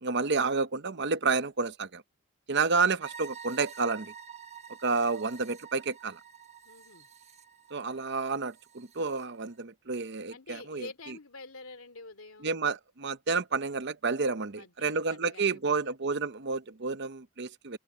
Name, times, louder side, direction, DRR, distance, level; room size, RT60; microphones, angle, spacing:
voice 1, 0.0-2.0 2.5-4.1 4.8-6.2 7.7-11.1 12.4-17.8, right 4 dB, 55° right, 0.9 m, -30 dB
sound 1, 3.0-9.2, right 7 dB, 30° right, 1.3 m, -48 dB
voice 2, 6.6-7.1 10.3-12.5 14.6-15.9, left 3 dB, 80° left, 2.6 m, -47 dB
open air
head